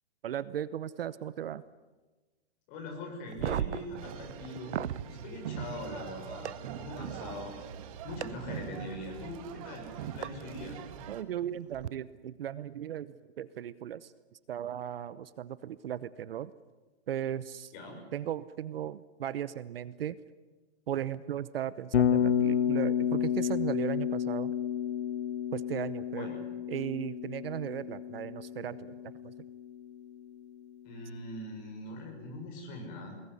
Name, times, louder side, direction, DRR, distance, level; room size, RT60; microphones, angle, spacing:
voice 1, 0.2-1.6 11.1-14.1 14.5-16.5 17.1-17.7 18.1-20.2 20.9-24.5 25.5-26.3 26.7-29.0 29.2-29.3, right 10 dB, 55° right, 16 dB, 0.9 m, -36 dB
voice 2, 2.7-7.5 8.0-10.8 17.7-18.0 26.1-26.4 30.8-33.2, left 1 dB, 25° left, 2 dB, 6.6 m, -42 dB
sound 1, 3.3-5.1 6.5-6.6 8.2-8.3 10.2-10.3 11.7-11.9, right 10 dB, 85° right, 0.8 m, -35 dB
sound 2, 4.0-11.2, right 9 dB, 30° right, 1.6 m, -43 dB
Bass guitar, 21.9-30.0, left 9 dB, 75° left, 2.4 m, -31 dB
23.0 x 21.0 x 9.8 m, 1.2 s
hypercardioid pair, 165°, 34 cm